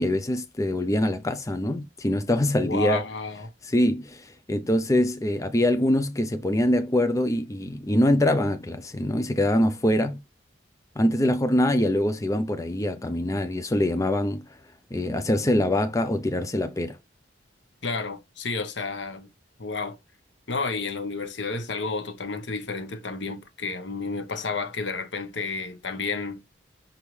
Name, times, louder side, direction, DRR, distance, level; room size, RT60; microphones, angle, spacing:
voice 1, 0.0-3.0 3.6-10.2 11.0-14.4 14.9-16.9, left 1 dB, 20° left, 0.5 m, -24 dB
voice 2, 2.6-3.5 17.8-19.3 19.6-20.0 20.5-26.4, left 4 dB, 75° left, 1.0 m, -31 dB
5.6 x 5.2 x 3.2 m
head